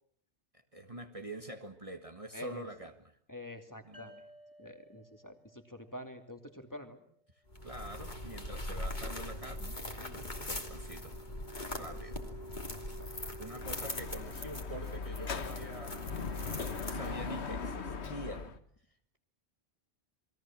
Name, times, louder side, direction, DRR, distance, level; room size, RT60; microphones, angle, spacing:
voice 1, 0.7-3.2 3.9-4.2 7.6-10.1 10.4-11.2 11.7-12.2 13.1-16.0 16.4-18.5, right 1 dB, 30° right, 5 dB, 1.8 m, -46 dB
voice 2, 2.3-2.7 3.3-4.1 4.6-7.0 10.0-10.5 11.7-12.0 13.0-13.1, left 1 dB, 15° left, 6 dB, 2.7 m, -47 dB
sound 1, 3.9-7.4, left 1 dB, 70° right, 6.5 m, -59 dB
sound 2, 7.5-17.4, left 1 dB, 40° left, 3.2 m, -41 dB
Dog / Motorcycle, 13.6-18.6, left 5 dB, 75° left, 1.7 m, -39 dB
28.5 x 22.0 x 7.4 m, 0.63 s
omnidirectional pair, 1.1 m